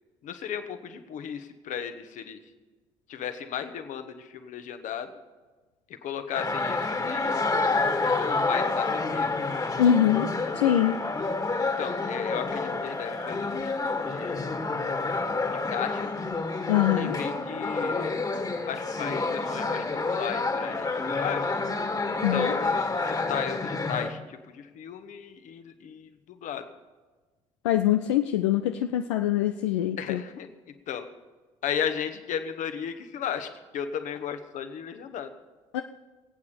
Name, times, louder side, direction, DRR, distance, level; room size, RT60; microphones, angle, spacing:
voice 1, 0.2-2.4 3.1-5.1 5.9-7.4 7.8-9.4 11.8-14.5 15.5-16.1 17.0-18.1 18.7-21.5 22.3-26.7 30.0-30.5 30.9-31.1 31.6-35.3, left 8 dB, 60° left, 8 dB, 1.3 m, -35 dB
sound 1, 6.3-24.1, left 3 dB, 25° left, 1.8 m, -28 dB
voice 2, 9.8-10.3 10.5-11.0 16.7-17.2 22.2-22.5 27.6-30.2 35.7-35.8, left 11 dB, 80° left, 7 dB, 0.5 m, -23 dB
22.5 x 8.6 x 5.1 m, 1.3 s
hypercardioid pair, 50°, 15 cm